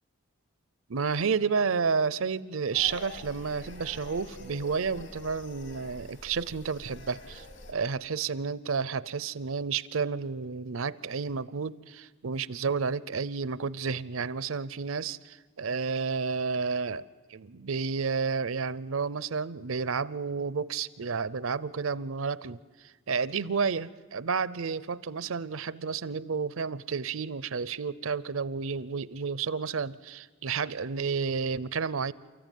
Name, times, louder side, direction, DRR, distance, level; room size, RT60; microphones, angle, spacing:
voice 1, 0.9-17.0 17.3-22.6 23.1-32.1, right 5 dB, 75° right, 0.6 m, -31 dB
sound 1, 2.7-7.7, left 2 dB, 60° left, 3.3 m, -46 dB
29.0 x 14.5 x 9.3 m
head